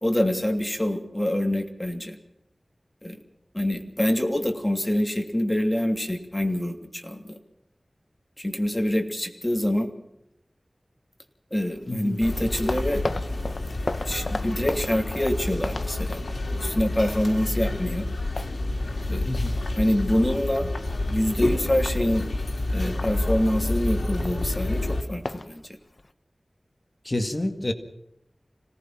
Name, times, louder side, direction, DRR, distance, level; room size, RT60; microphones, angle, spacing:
voice 1, 0.0-2.2 3.0-3.2 3.5-7.4 8.4-9.9 11.5-13.0 14.1-16.2 16.6-18.1 19.1-19.3 19.8-20.7 21.1-22.3 22.7-25.6, left 1 dB, 15° left, 4 dB, 3.0 m, -25 dB
sound 1, 11.6-16.9 17.2-17.4 17.8-20.5 20.8-21.2 21.7-22.1 22.3-22.5 22.8-26.1, left 2 dB, 50° left, 0.8 m, -36 dB
voice 2, 11.9-12.2 19.2-19.6 27.0-27.7, left 1 dB, 35° left, 6 dB, 2.1 m, -28 dB
sound 2, 12.2-25.0, left 2 dB, 80° left, 3.2 m, -29 dB
26.5 x 18.5 x 5.9 m, 0.83 s
wide cardioid pair, 65°, 0 cm